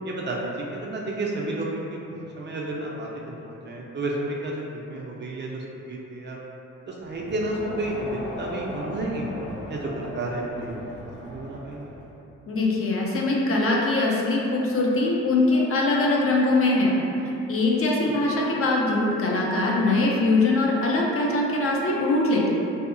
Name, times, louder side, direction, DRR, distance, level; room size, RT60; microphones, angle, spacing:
voice 1, 0.0-6.4 6.9-9.3 9.7-11.9 18.0-18.1, right 2 dB, 35° right, -3 dB, 0.4 m, -31 dB
Crowd, 7.0-12.2, left 1 dB, 70° left, 0.9 m, -38 dB
voice 2, 12.5-16.9 17.5-22.5, left 2 dB, 45° left, -2 dB, 0.5 m, -22 dB
2.7 x 2.3 x 2.5 m, 2.9 s
cardioid pair, 85°, 30 cm